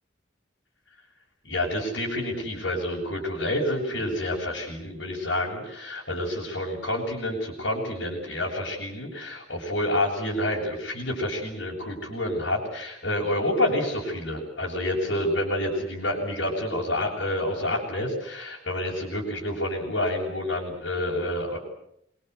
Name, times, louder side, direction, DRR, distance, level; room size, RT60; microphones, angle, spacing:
voice 1, 1.4-21.6, left 1 dB, 75° left, -3 dB, 7.2 m, -28 dB
26.5 x 23.0 x 8.2 m, 0.76 s
head